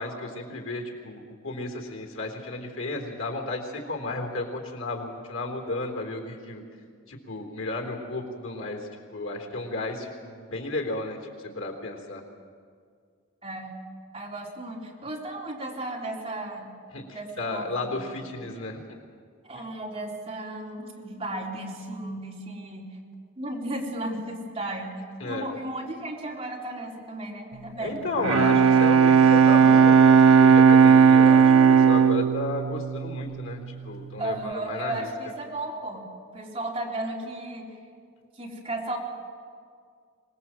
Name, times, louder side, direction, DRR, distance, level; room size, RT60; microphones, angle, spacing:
voice 1, 0.0-6.6 7.1-12.2 16.9-18.8 25.2-25.5 27.8-35.1, left 2 dB, 80° left, 2 dB, 3.6 m, -33 dB
voice 2, 13.4-13.8 14.1-16.7 17.1-18.1 19.4-22.9 23.4-25.0 25.3-28.0 28.4-28.5 34.2-36.0 36.3-37.7 38.4-39.0, right 1 dB, 25° right, -3 dB, 4.1 m, -34 dB
Bowed string instrument, 28.0-33.8, right 6 dB, 80° right, 0.6 m, -17 dB
25.5 x 20.5 x 7.6 m, 2.1 s
head